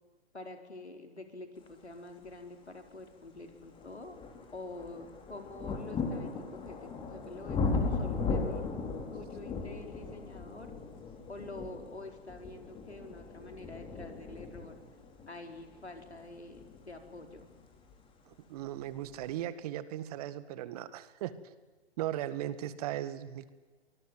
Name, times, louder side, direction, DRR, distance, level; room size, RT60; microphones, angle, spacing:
voice 1, 0.3-4.2 4.5-8.7 9.1-10.7 11.3-14.8 15.3-17.5, left 2 dB, 90° left, 5 dB, 5.0 m, -47 dB
sound 1, 2.7-2.8 3.4-18.1 19.0-19.1, left 4 dB, 15° left, 3.8 m, -37 dB
voice 2, 18.3-21.3 22.0-23.5, right 12 dB, 35° right, 14 dB, 1.9 m, -37 dB
25.5 x 20.0 x 9.5 m, 1.2 s
figure-of-eight pair, 130°, 32 cm